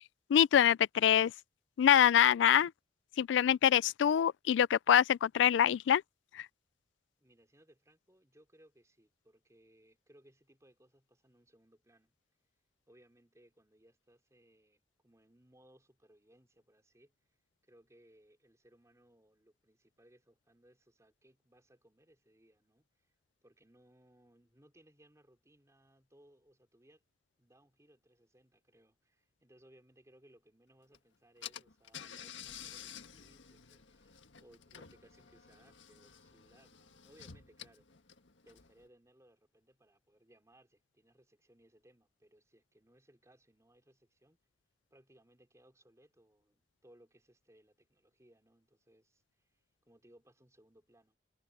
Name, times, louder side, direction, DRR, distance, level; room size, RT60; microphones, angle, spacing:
voice 1, 0.3-1.3 1.8-2.7 3.2-6.0 6.3-6.5, left 9 dB, 70° left, 0.3 m, -25 dB
voice 2, 7.2-12.1 12.9-17.4 17.6-23.1 23.4-27.0 27.4-37.9 38.4-44.4 44.9-51.2, right 1 dB, 15° right, 4.7 m, -65 dB
Car / Engine, 30.9-31.0 31.4-38.9, left 8 dB, 90° left, 1.6 m, -51 dB
head